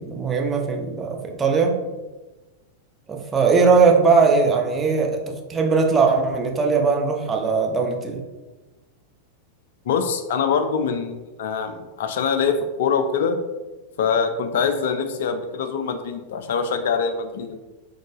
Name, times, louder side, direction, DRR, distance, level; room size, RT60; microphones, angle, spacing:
voice 1, 0.0-1.8 3.1-8.2, right 4 dB, 20° right, 2 dB, 0.7 m, -19 dB
voice 2, 9.9-13.4 14.0-17.6, left 6 dB, 55° left, 7 dB, 0.5 m, -24 dB
3.8 x 3.7 x 3.6 m, 1.2 s
figure-of-eight pair, 90°, 0 cm